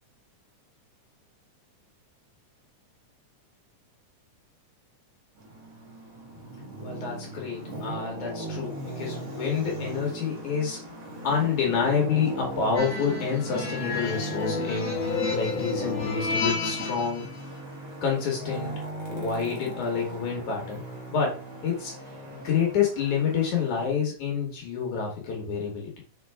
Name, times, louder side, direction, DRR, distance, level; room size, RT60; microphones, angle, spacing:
Traffic noise roadway noise, 5.4-23.9, right 1 dB, 55° right, 2.5 m, -38 dB
voice 1, 6.8-10.8 11.2-17.2 18.0-18.8 19.1-20.8 21.1-21.9 22.3-25.9, left 6 dB, 75° left, 0 dB, 2.9 m, -28 dB
sound 1, 12.8-17.3, left 4 dB, 35° left, 1.9 m, -31 dB
5.5 x 5.4 x 3.5 m, 0.39 s
omnidirectional pair, 3.5 m